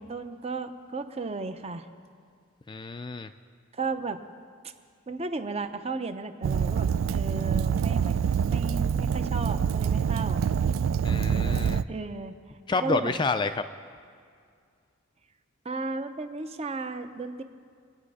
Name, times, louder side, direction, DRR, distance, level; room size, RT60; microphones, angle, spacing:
voice 1, 0.0-1.9 3.7-4.2 5.1-8.2 8.4-10.5 11.9-12.4 12.8-13.2 15.6-17.4, right 3 dB, 30° right, 9 dB, 0.7 m, -34 dB
voice 2, 2.7-3.3 11.0-11.9 12.7-13.6, left 3 dB, 25° left, 9 dB, 0.3 m, -29 dB
Fire, 6.4-11.8, right 7 dB, 75° right, 0.3 m, -26 dB
25.0 x 9.3 x 4.9 m, 2.2 s
head